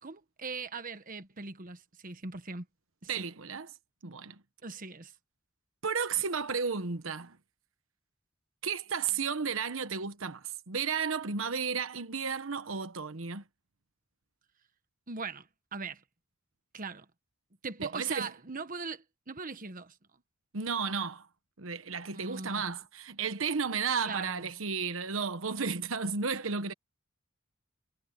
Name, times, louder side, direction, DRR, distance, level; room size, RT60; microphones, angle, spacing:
voice 1, 0.0-2.6 3.0-3.3 4.6-5.1 15.1-16.0 16.7-17.0 17.6-19.9 22.1-22.7 24.0-24.5, right 4 dB, 45° right, 1.3 m, -40 dB
voice 2, 3.1-3.7 4.0-4.3 5.8-7.4 8.6-13.4 17.9-18.3 20.5-21.3 21.6-26.7, right 5 dB, 80° right, 1.1 m, -33 dB
head